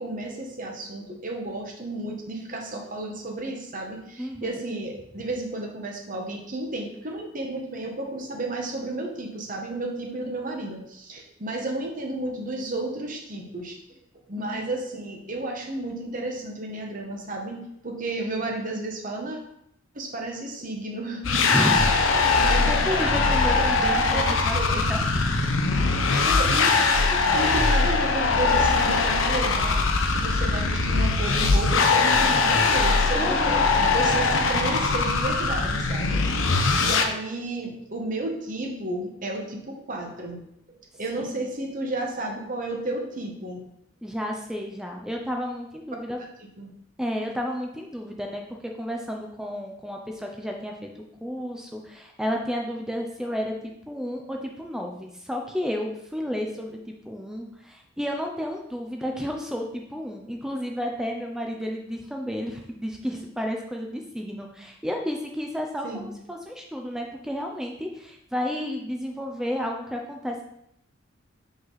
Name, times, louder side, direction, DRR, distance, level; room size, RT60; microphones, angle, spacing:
voice 1, 0.0-14.0 14.3-17.6 17.8-19.4 19.9-21.5 21.9-23.6 24.1-24.8 26.3-26.7 27.1-40.4 40.9-43.6 45.9-46.0 46.6-46.7 65.8-66.1, right 2 dB, 40° right, 1 dB, 1.2 m, -32 dB
voice 2, 4.2-4.6 14.4-14.6 21.5-22.1 22.7-25.5 33.1-33.7 41.2-41.3 44.0-46.2 47.0-50.9 51.2-70.5, equal, 5° right, 1 dB, 0.6 m, -32 dB
sound 1, 21.2-37.0, left 4 dB, 70° left, 0.7 m, -21 dB
5.9 x 5.2 x 4.0 m, 0.76 s
head